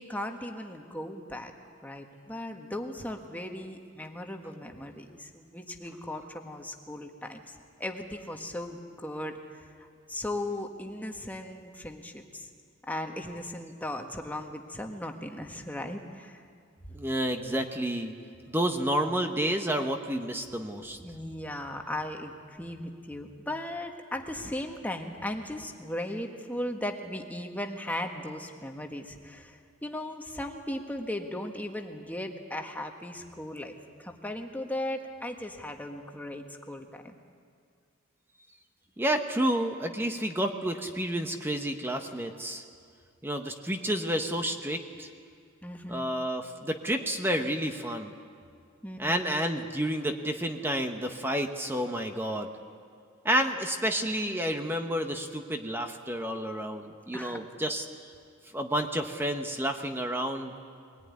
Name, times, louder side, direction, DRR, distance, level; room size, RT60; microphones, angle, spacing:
voice 1, 0.0-1.5 1.8-9.4 9.8-12.5 12.9-16.4 21.0-37.2 45.6-46.1 48.8-49.2 57.1-57.4, left 1 dB, 10° left, 3 dB, 1.5 m, -37 dB
voice 2, 16.9-18.2 18.5-21.0 39.0-42.6 43.2-45.1 45.9-48.2 49.0-52.5 53.2-57.8 58.5-60.5, right 1 dB, 10° right, 5 dB, 1.0 m, -30 dB
23.0 x 18.5 x 9.6 m, 2.2 s
head